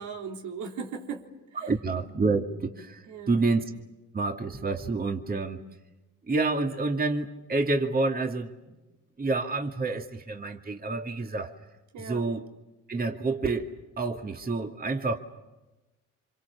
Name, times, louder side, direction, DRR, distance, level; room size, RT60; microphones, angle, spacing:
voice 1, 0.0-1.7 3.1-3.5 11.9-12.3, right 5 dB, 80° right, 1 dB, 3.7 m, -38 dB
voice 2, 1.6-3.6 4.1-5.6 6.3-8.8 9.2-11.5 12.0-12.5 12.9-13.7 14.0-15.2, right 3 dB, 30° right, 3 dB, 2.4 m, -28 dB
29.0 x 26.5 x 7.1 m, 1.1 s
cardioid pair, 90°, 30 cm